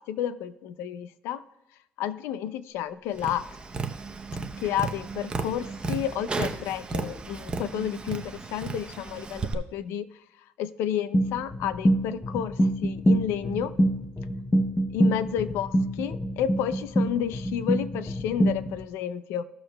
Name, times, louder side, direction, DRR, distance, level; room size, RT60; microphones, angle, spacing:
voice 1, 0.0-1.4 2.0-3.5 4.6-10.1 10.6-13.7 14.9-19.4, left 10 dB, 85° left, 14 dB, 0.4 m, -31 dB
Tap, 3.2-9.5, right 4 dB, 25° right, 0.7 m, -34 dB
sound 1, 11.1-18.9, right 1 dB, 15° left, 0.6 m, -26 dB
15.0 x 6.4 x 2.2 m, 0.88 s
cardioid pair, 120°, 4 cm